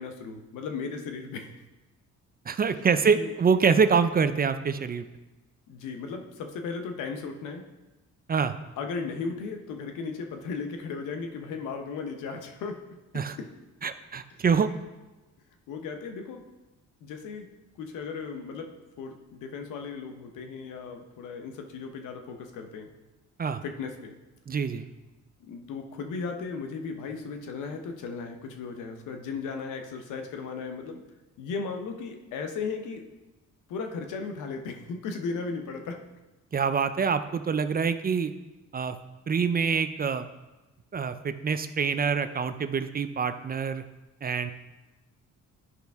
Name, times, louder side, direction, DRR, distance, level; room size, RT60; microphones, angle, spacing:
voice 1, 0.0-1.5 2.8-3.3 5.7-7.6 8.8-12.8 13.4-13.5 15.7-16.4 17.0-17.5 17.8-18.7 19.0-22.9 23.6-24.1 25.4-31.0 31.4-33.0 33.7-36.0, left 4 dB, 90° left, 5 dB, 1.0 m, -36 dB
voice 2, 2.5-5.0 8.3-8.5 13.1-13.4 13.8-14.7 23.4-23.6 24.5-24.9 36.5-38.3 38.7-39.0 39.3-40.3 40.9-43.8 44.2-44.5, right 6 dB, 30° right, 10 dB, 0.4 m, -25 dB
11.0 x 5.2 x 3.5 m, 1.1 s
cardioid pair, 90°, 30 cm